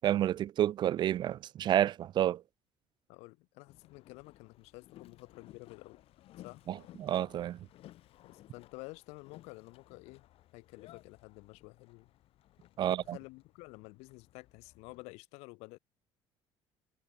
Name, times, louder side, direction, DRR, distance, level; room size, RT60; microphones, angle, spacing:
voice 1, 0.0-2.4 6.7-7.6 12.8-13.2, right 11 dB, 45° right, 0.4 m, -30 dB
voice 2, 3.1-6.0 6.4-6.6 8.2-10.2 10.5-12.1 12.8-15.8, left 25 dB, 85° left, 5.0 m, -50 dB
Boat Water vehicle, 3.7-15.1, left 14 dB, 65° left, 4.5 m, -58 dB
cardioid pair, 115°, 11 cm